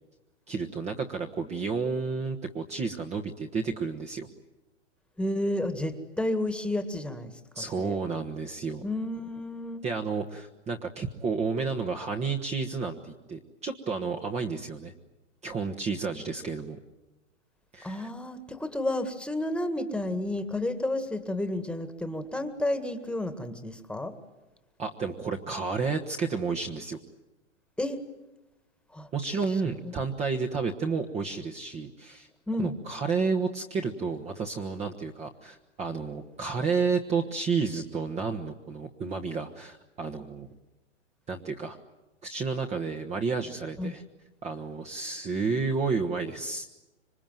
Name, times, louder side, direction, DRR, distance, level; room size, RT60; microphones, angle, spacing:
voice 1, 0.5-4.3 7.5-8.8 9.8-14.9 15.4-16.8 17.7-18.1 24.8-27.0 29.1-32.3 32.6-40.5 41.3-41.8 42.2-44.0 44.4-46.7, right 4 dB, 20° right, 2 dB, 1.3 m, -31 dB
voice 2, 5.2-8.0 8.8-9.8 17.8-24.2 27.8-28.0 28.9-29.1 32.5-32.7 43.8-43.9, left 1 dB, 5° left, 9 dB, 1.8 m, -31 dB
26.5 x 24.0 x 9.2 m, 1.0 s
hypercardioid pair, 130°, 36 cm